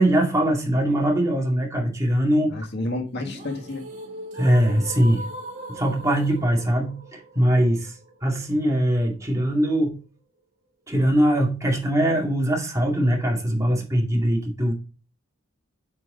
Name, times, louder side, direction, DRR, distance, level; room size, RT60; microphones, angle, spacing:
voice 1, 0.0-2.6 4.3-5.2 5.7-7.9 8.2-10.0 10.9-14.7, right 1 dB, 15° right, 0 dB, 2.2 m, -21 dB
voice 2, 2.5-3.8, left 2 dB, 55° left, 3 dB, 1.8 m, -30 dB
sound 1, 3.1-9.1, right 1 dB, 35° right, 2.4 m, -40 dB
8.9 x 4.8 x 3.7 m, 0.35 s
head